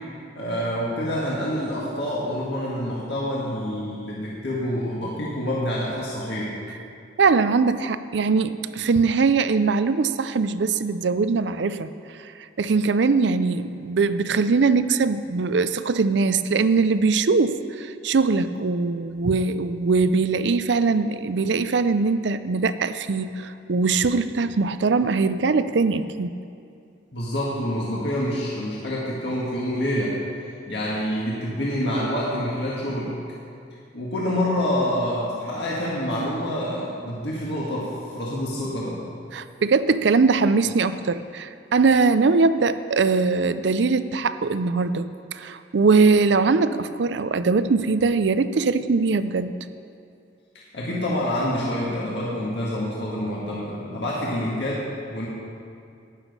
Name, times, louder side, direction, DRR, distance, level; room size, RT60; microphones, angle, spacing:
voice 1, 0.3-6.6 27.1-30.2 30.7-33.1 33.9-39.0 50.7-55.3, equal, 65° left, -6 dB, 1.8 m, -27 dB
voice 2, 7.2-11.9 12.6-26.3 39.3-49.5, right 4 dB, 70° right, 12 dB, 0.5 m, -21 dB
12.0 x 10.0 x 5.4 m, 2.4 s
head